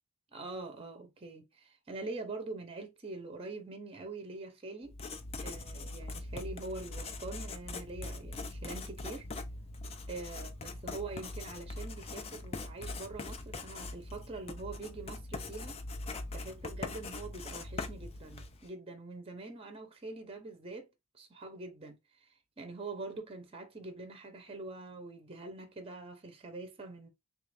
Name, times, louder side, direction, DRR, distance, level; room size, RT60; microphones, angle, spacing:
voice 1, 0.3-5.0 5.4-9.3 10.1-15.8 16.3-20.9 21.1-27.1, right 3 dB, 25° right, 0.6 m, -44 dB
Writing, 4.9-18.7, left 2 dB, 25° left, 0.4 m, -42 dB
3.3 x 2.5 x 3.2 m
head